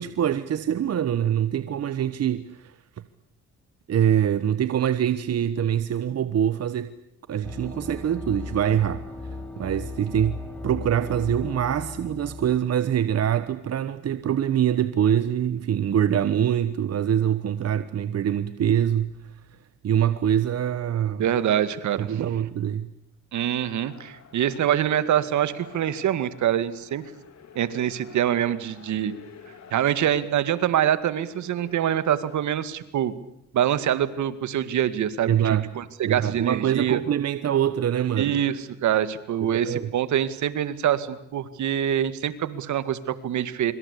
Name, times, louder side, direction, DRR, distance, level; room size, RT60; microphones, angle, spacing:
voice 1, 0.0-2.7 3.9-6.9 7.3-9.0 9.6-19.1 19.8-21.2 22.0-22.9 35.3-35.7 36.1-38.4 39.5-39.9, right 10 dB, 55° right, 1.2 m, -24 dB
sound 1, 7.4-12.5, left 3 dB, 5° left, 6.3 m, -37 dB
voice 2, 21.2-22.3 23.3-27.1 27.6-29.1 29.7-33.1 33.5-37.0 38.2-43.7, right 10 dB, 70° right, 2.1 m, -25 dB
sound 2, 23.6-32.5, left 7 dB, 65° left, 4.4 m, -49 dB
25.5 x 25.5 x 8.5 m
cardioid pair, 90°, 30 cm